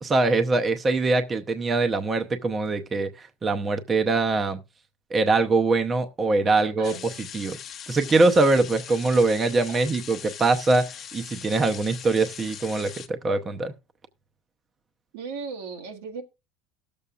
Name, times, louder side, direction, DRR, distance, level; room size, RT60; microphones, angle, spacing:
voice 1, 0.0-4.6 5.1-7.0 7.3-7.6 7.9-13.7, right 3 dB, 20° right, 0.7 m, -23 dB
voice 2, 6.5-7.0 9.7-9.9 15.1-16.2, right 5 dB, 90° right, 1.6 m, -37 dB
sound 1, 6.8-13.1, left 8 dB, 35° left, 0.8 m, -41 dB
19.0 x 6.9 x 2.4 m
cardioid pair, 145°, 0 cm